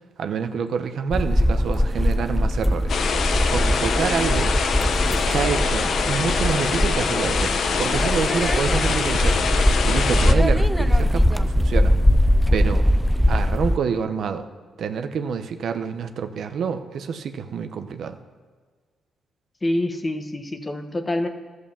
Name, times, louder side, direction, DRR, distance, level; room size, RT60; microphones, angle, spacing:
voice 1, 0.2-3.0 3.5-4.5 5.2-9.4 9.8-12.0 12.5-12.9 13.3-14.5 14.8-18.2, right 6 dB, 65° right, 8 dB, 0.9 m, -27 dB
sound 1, 1.1-13.8, equal, ahead, 0.4 m, -21 dB
sound 2, 2.9-10.3, left 5 dB, 60° left, 1.0 m, -24 dB
voice 2, 19.6-21.3, left 1 dB, 20° left, 7 dB, 1.2 m, -26 dB
12.5 x 8.0 x 7.1 m, 1.5 s
cardioid pair, 90°, 0 cm